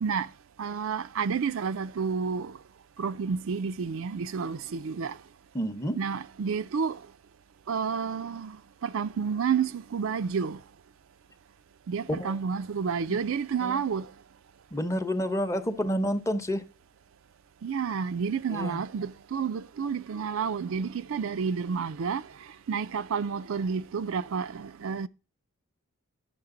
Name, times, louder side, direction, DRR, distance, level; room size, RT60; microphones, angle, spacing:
voice 1, 0.6-2.5 3.0-5.2 6.0-7.0 7.7-8.6 8.8-10.6 11.9-14.1 17.6-22.2 22.7-25.1, right 6 dB, 65° right, 0.4 m, -30 dB
voice 2, 5.5-6.0 12.1-12.4 13.1-13.2 13.6-13.8 14.7-16.6 18.5-18.8, equal, 15° left, 0.8 m, -29 dB
10.5 x 6.6 x 3.7 m
head